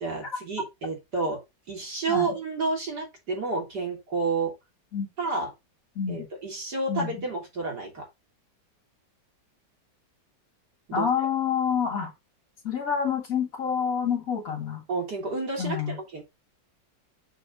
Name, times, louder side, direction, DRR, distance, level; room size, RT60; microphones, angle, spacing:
voice 1, 0.0-1.4 1.7-4.5 5.2-5.5 6.1-8.0 10.9-11.1 14.9-16.2, right 3 dB, 60° right, 3.4 m, -30 dB
voice 2, 6.0-6.3 6.9-7.2 10.9-12.1 12.6-14.8 15.6-16.0, left 7 dB, 50° left, 2.3 m, -27 dB
6.0 x 5.6 x 4.0 m
omnidirectional pair, 2.0 m